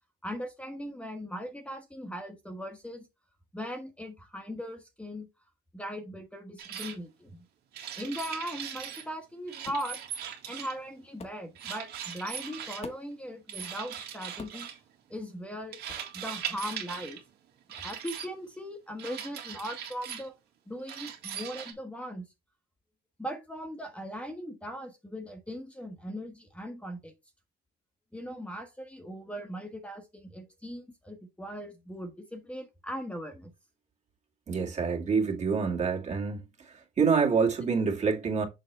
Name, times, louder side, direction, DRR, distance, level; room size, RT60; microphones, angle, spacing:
voice 1, 0.2-3.1 3.5-5.3 5.7-7.4 8.0-10.0 10.5-14.7 15.1-15.8 16.1-17.2 17.8-20.3 20.7-22.3 23.2-27.1 28.1-33.5, equal, 5° left, 1.2 m, -39 dB
sound 1, 6.6-7.0 7.7-9.1 9.5-10.9 11.6-12.8 13.5-14.8 15.7-17.2 17.7-18.3 19.0-20.3 20.9-21.7, right 8 dB, 75° right, 1.9 m, -39 dB
sound 2, 9.6-9.9 11.2-11.4 12.8-13.2 14.4-14.7 15.9-16.1, left 5 dB, 40° left, 1.3 m, -45 dB
voice 2, 34.5-36.4 37.0-38.5, right 5 dB, 45° right, 2.1 m, -26 dB
6.9 x 4.8 x 3.3 m
cardioid pair, 110°, 17 cm